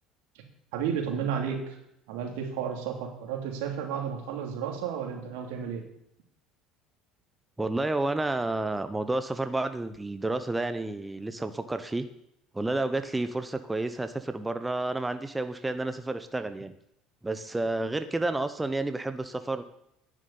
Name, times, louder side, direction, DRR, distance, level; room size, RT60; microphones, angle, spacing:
voice 1, 0.7-1.8 2.1-5.9, right 7 dB, 80° right, 3 dB, 2.9 m, -32 dB
voice 2, 7.6-12.1 12.5-16.7 17.2-19.6, right 2 dB, 10° right, 10 dB, 0.9 m, -30 dB
10.5 x 7.4 x 8.7 m, 0.78 s
supercardioid pair, 90°, 0 cm